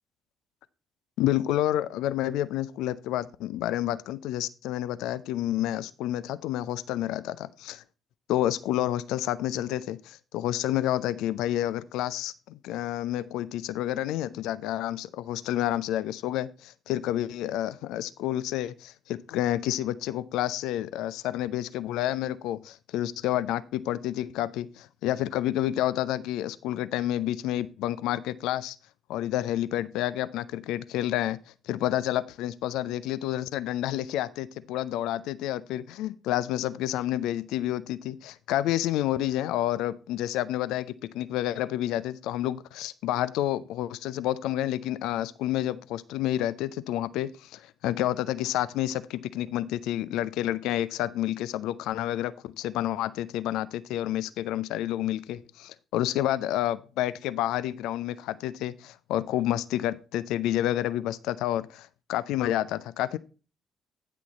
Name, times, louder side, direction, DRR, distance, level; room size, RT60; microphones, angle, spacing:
voice 1, 1.2-7.8 8.3-28.8 29.1-31.4 31.6-63.2, left 13 dB, 60° left, 17 dB, 0.4 m, -29 dB
9.7 x 6.1 x 4.1 m, 0.33 s
figure-of-eight pair, 45°, 0 cm